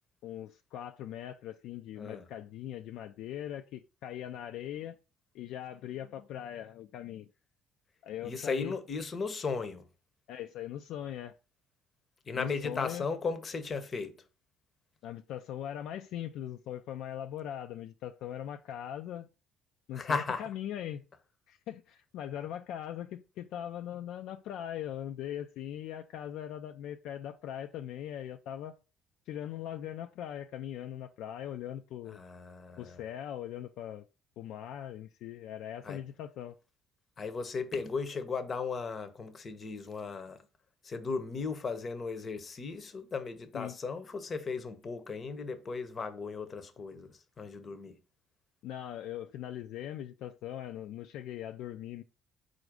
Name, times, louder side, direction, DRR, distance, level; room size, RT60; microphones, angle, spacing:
voice 1, 0.2-5.0 5.3-7.3 8.0-8.7 10.3-11.4 12.4-13.1 15.0-19.3 19.9-21.0 21.5-28.8 29.3-32.2 32.8-34.0 34.4-36.6 43.5-43.8 48.6-52.0, left 11 dB, 75° left, 0.3 m, -40 dB
voice 2, 2.0-2.3 8.2-9.9 12.3-14.2 19.9-20.5 32.1-33.0 35.8-36.0 37.2-40.5 40.8-48.0, left 4 dB, 40° left, 0.7 m, -36 dB
4.0 x 2.6 x 4.6 m
supercardioid pair, 80°, 0 cm